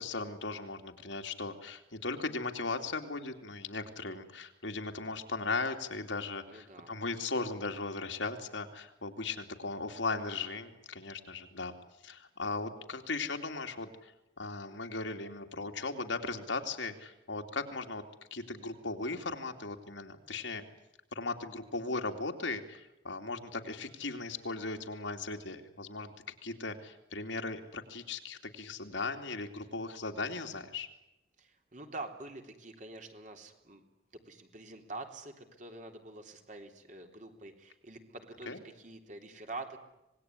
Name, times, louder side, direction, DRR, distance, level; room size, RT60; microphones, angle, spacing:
voice 1, 0.0-11.7 12.0-14.1 14.4-18.0 18.3-20.6 21.1-26.1 26.4-30.9 38.5-38.6, left 3 dB, 80° left, 4 dB, 3.0 m, -37 dB
voice 2, 6.5-6.9 31.4-33.8 34.3-39.8, right 2 dB, 40° right, 4 dB, 3.5 m, -46 dB
26.0 x 20.5 x 9.8 m, 0.90 s
head